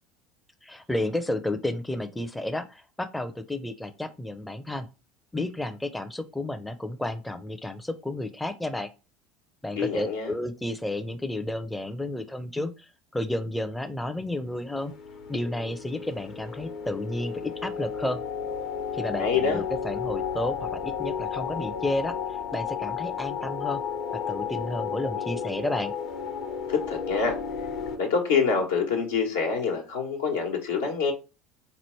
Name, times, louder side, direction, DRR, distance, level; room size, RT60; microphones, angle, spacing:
voice 1, 0.6-4.9 5.3-8.9 9.6-14.9 15.3-18.2 18.9-22.1 22.5-23.8 24.3-25.9, left 1 dB, 10° left, 0.4 m, -31 dB
voice 2, 9.7-10.3 19.2-19.6 26.7-27.4 28.0-31.1, left 5 dB, 85° left, 1.1 m, -26 dB
sound 1, 14.6-28.0, left 7 dB, 65° left, 0.9 m, -33 dB
3.9 x 3.0 x 3.1 m
hypercardioid pair, 80°, 0 cm